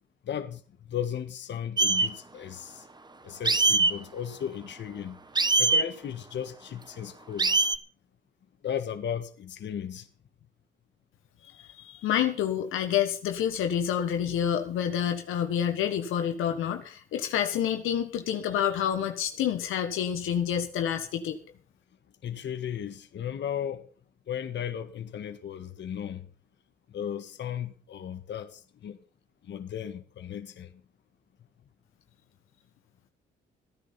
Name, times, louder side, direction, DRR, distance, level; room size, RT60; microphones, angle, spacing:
voice 1, 0.2-2.9 3.2-5.2 5.6-7.6 8.6-10.1 22.2-23.8 24.3-26.3 26.9-29.0 29.4-30.7, left 9 dB, 60° left, 1.7 m, -35 dB
sound 1, 1.8-2.1 3.4-3.9 5.3-5.9 7.4-7.8, right 3 dB, 20° right, 1.0 m, -22 dB
voice 2, 11.4-21.4, left 9 dB, 85° left, 1.5 m, -28 dB
15.0 x 10.5 x 5.7 m
cardioid pair, 85°, 20 cm